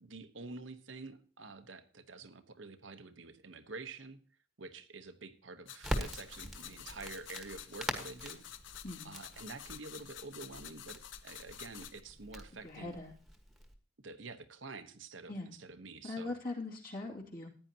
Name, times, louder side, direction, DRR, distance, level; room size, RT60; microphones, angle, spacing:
voice 1, 0.0-4.2 4.6-8.4 9.0-13.0 14.0-16.3, right 3 dB, 80° right, 10 dB, 1.2 m, -48 dB
sound 1, 5.7-12.0, left 10 dB, 75° left, 0.8 m, -50 dB
Crackle, 5.8-13.7, equal, ahead, 1.5 m, -44 dB
voice 2, 12.6-13.1 15.3-15.5 16.0-17.5, left 2 dB, 50° left, -1 dB, 2.6 m, -41 dB
14.5 x 9.8 x 2.9 m, 0.42 s
head